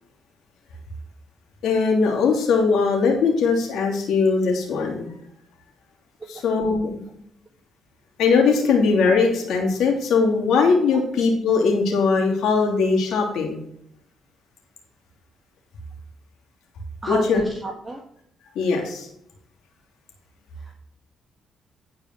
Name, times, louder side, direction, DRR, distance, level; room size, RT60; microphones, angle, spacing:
voice 1, 1.6-5.2 6.3-7.0 8.2-13.6 17.1-17.4 18.5-19.1, left 4 dB, 75° left, -1 dB, 2.9 m, -20 dB
voice 2, 17.0-18.0 20.6-20.7, right 2 dB, 20° right, 2 dB, 1.4 m, -31 dB
10.5 x 4.9 x 5.9 m, 0.73 s
cardioid pair, 90°, 0 cm